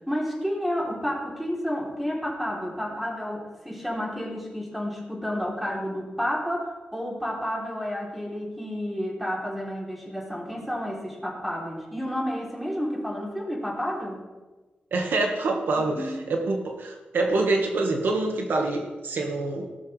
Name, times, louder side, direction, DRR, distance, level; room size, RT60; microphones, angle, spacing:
voice 1, 0.1-14.2 15.7-16.2, equal, 5° right, -3 dB, 3.5 m, -31 dB
voice 2, 14.9-19.7, right 2 dB, 90° right, 2 dB, 1.8 m, -26 dB
18.0 x 12.5 x 3.4 m, 1.2 s
wide cardioid pair, 155°, 3 cm